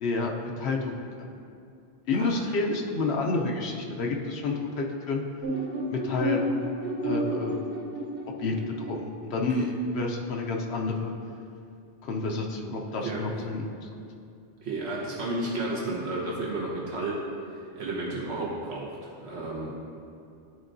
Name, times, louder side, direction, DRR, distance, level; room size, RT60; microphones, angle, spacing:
voice 1, 0.0-1.3 2.1-5.2 5.9-6.4 7.0-7.8 8.4-11.1 12.0-13.9, left 3 dB, 85° left, 0 dB, 0.9 m, -29 dB
sound 1, 5.4-9.1, equal, 70° right, 1.2 m, -31 dB
voice 2, 14.6-17.2 17.7-19.7, right 2 dB, 90° right, -5 dB, 1.4 m, -32 dB
11.0 x 4.5 x 2.6 m, 2.5 s
omnidirectional pair, 1.1 m